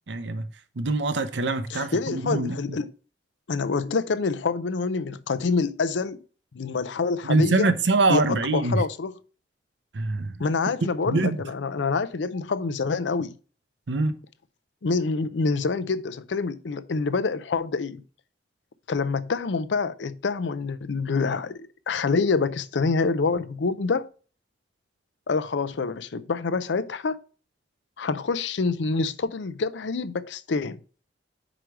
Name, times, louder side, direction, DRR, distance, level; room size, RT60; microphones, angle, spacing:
voice 1, 0.1-0.5 0.8-2.6 7.2-8.8 9.9-10.4 11.1-11.4 13.9-14.2, right 3 dB, 75° right, 0.7 m, -24 dB
voice 2, 1.7-2.9 3.5-6.2 6.5-7.7 8.1-9.1 10.4-13.3 14.8-18.0 18.9-24.1 25.3-27.2 28.0-30.8, left 4 dB, 80° left, 0.5 m, -26 dB
5.0 x 4.6 x 6.0 m
head